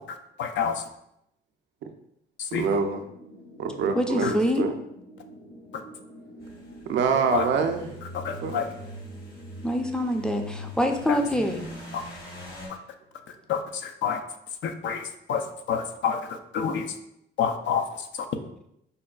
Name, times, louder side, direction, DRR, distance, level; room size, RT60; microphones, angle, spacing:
voice 1, 0.1-0.8 2.4-2.7 4.2-4.3 7.3-7.5 8.1-8.7 11.1-11.2 11.9-12.0 13.5-14.2 14.6-16.9 17.4-18.1, left 7 dB, 70° left, 7 dB, 0.4 m, -28 dB
voice 2, 2.5-3.0 3.6-4.7 6.9-8.0 8.4-8.6, right 5 dB, 65° right, 5 dB, 0.5 m, -25 dB
sound 1, 2.9-12.1, equal, 85° left, 0.9 m, -48 dB
voice 3, 4.0-4.7 9.6-11.6, equal, 5° left, 4 dB, 0.4 m, -25 dB
sound 2, 6.4-12.7, left 1 dB, 50° left, 1.1 m, -42 dB
5.2 x 2.2 x 2.3 m, 0.78 s
cardioid pair, 90°, 20 cm